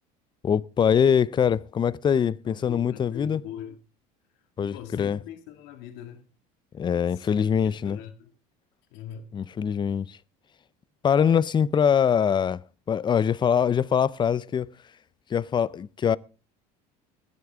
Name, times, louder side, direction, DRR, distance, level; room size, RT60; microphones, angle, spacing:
voice 1, 0.4-3.4 4.6-5.2 6.7-8.0 9.3-10.2 11.0-12.6 12.9-14.7 15.3-16.2, left 7 dB, 25° left, 0.5 m, -23 dB
voice 2, 2.5-3.8 4.7-6.2 7.1-8.3 8.9-9.3, left 9 dB, 70° left, 1.9 m, -42 dB
21.0 x 8.1 x 3.5 m
supercardioid pair, 100°, 19 cm